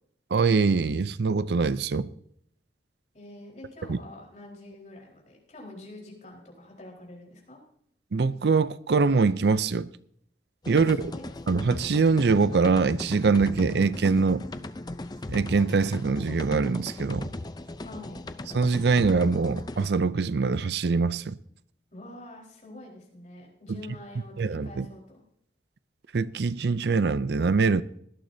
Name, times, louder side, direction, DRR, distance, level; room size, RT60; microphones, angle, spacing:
voice 1, 0.3-2.1 3.9-4.0 8.1-9.9 10.7-11.1 11.5-14.4 15.3-17.3 18.5-21.4 24.4-24.9 26.1-27.8, right 4 dB, 65° right, 0.5 m, -23 dB
voice 2, 3.1-7.6 10.8-11.3 17.8-18.2 21.9-25.2, left 1 dB, 40° left, 4.4 m, -46 dB
sound 1, 10.6-19.9, left 2 dB, 25° left, 0.5 m, -38 dB
18.0 x 12.0 x 2.7 m
head